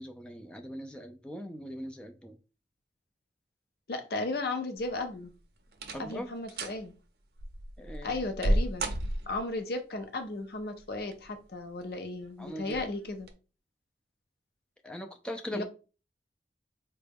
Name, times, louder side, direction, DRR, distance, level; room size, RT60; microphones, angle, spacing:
voice 1, 0.0-2.4 5.9-6.3 7.8-8.2 12.4-12.8 14.8-15.6, equal, 5° left, 0.4 m, -40 dB
voice 2, 3.9-5.3 6.0-6.9 8.0-8.8 9.3-13.3 15.5-15.6, left 2 dB, 60° left, 0.6 m, -35 dB
sound 1, 4.8-5.2 5.7-6.2 6.5-6.8 7.4-9.6 10.8-11.4 11.8-11.9 12.6-12.9 13.2-13.3, right 1 dB, 60° right, 0.5 m, -32 dB
3.9 x 2.2 x 3.4 m
head